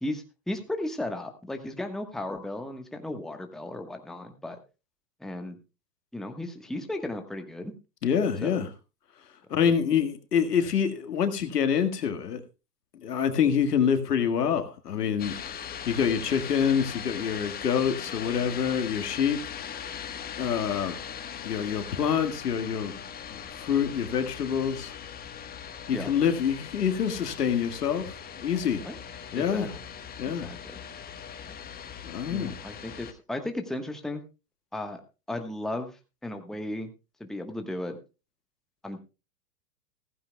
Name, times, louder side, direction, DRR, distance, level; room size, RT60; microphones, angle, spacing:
voice 1, 0.0-4.6 5.2-5.6 6.1-7.7 8.4-8.6 25.9-26.1 28.8-28.9 29.3-29.7 30.4-30.6 31.4-31.6 32.3-34.2 34.7-35.0 35.3-35.9 36.2-36.9 37.2-38.0 38.8-39.0, left 1 dB, ahead, 1.2 m, -35 dB
voice 2, 8.0-8.7 9.5-12.4 13.0-15.4 15.9-19.4 20.4-21.0 21.4-24.9 25.9-28.9 29.3-29.7 30.2-30.5 32.0-32.5, left 7 dB, 80° left, 1.8 m, -26 dB
sound 1, 15.2-33.1, left 8 dB, 20° left, 1.3 m, -40 dB
15.5 x 14.5 x 2.2 m
hypercardioid pair, 110°, 47 cm